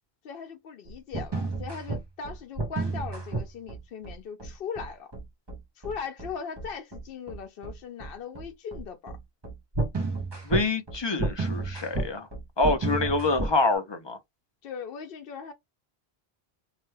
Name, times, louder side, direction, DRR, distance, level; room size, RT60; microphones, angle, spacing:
voice 1, 0.2-5.1 5.8-9.2 12.9-13.2 14.6-15.5, left 6 dB, 70° left, 0.8 m, -39 dB
sound 1, 0.9-13.6, right 3 dB, 30° right, 0.7 m, -31 dB
voice 2, 10.5-12.3 12.6-14.2, left 3 dB, 35° left, 0.5 m, -26 dB
2.8 x 2.1 x 3.1 m
omnidirectional pair, 1.0 m